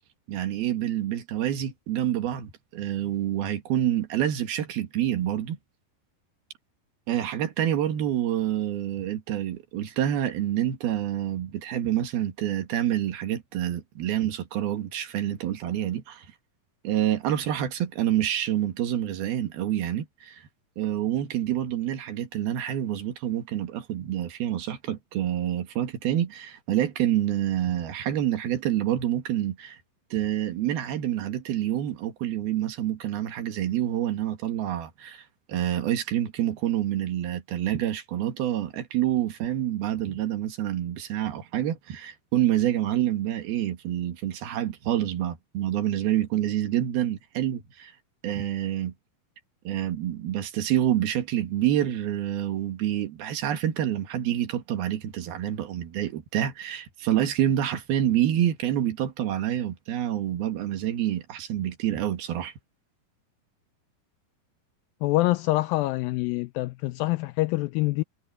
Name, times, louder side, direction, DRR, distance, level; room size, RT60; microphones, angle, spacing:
voice 1, 0.3-5.6 7.1-16.3 16.8-20.5 20.8-29.8 30.1-47.9 48.2-48.9 49.7-62.5, right 11 dB, 75° right, 3.6 m, -27 dB
voice 2, 65.0-68.0, left 19 dB, 85° left, 2.1 m, -25 dB
omnidirectional pair, 4.5 m